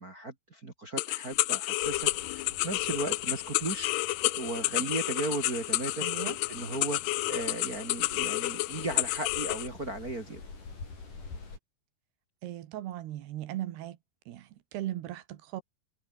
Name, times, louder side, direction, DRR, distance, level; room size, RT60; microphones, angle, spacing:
voice 1, 0.0-3.9 4.3-6.1 6.5-10.4, right 2 dB, 30° right, 2.2 m, -36 dB
sound 1, 1.0-9.7, left 20 dB, 85° left, 2.7 m, -30 dB
sound 2, 1.8-11.6, left 4 dB, 50° left, 8.2 m, -49 dB
voice 2, 6.0-6.4 12.4-14.0 14.3-15.6, right 13 dB, 80° right, 3.4 m, -38 dB
omnidirectional pair, 4.8 m